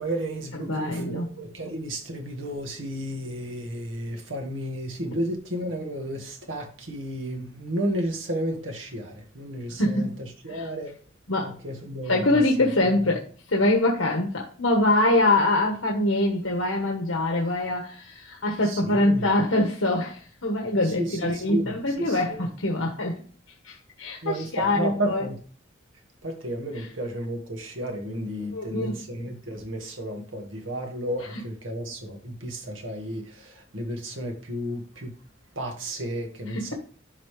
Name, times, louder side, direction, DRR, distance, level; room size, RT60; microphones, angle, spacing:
voice 1, 0.0-10.9 11.4-12.4 12.8-12.9 18.6-19.3 20.8-22.4 24.2-25.4 26.2-35.1 35.6-36.7, right 1 dB, 75° right, 1.8 m, -33 dB
voice 2, 0.6-1.2 9.8-10.1 10.5-10.6 11.3-11.5 12.1-23.2 23.6-25.2 28.5-28.9 36.5-36.7, left 2 dB, 85° left, 1.4 m, -24 dB
11.5 x 4.1 x 3.3 m
head